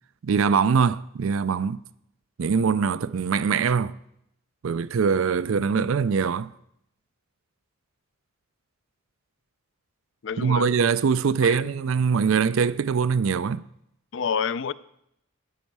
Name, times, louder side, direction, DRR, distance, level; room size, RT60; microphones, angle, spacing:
voice 1, 0.2-1.8 2.4-4.0 4.6-6.5 10.4-13.6, right 6 dB, 70° right, 0.4 m, -23 dB
voice 2, 10.2-10.7 11.4-11.6 14.1-14.7, left 6 dB, 55° left, 0.4 m, -28 dB
14.0 x 10.5 x 4.7 m
head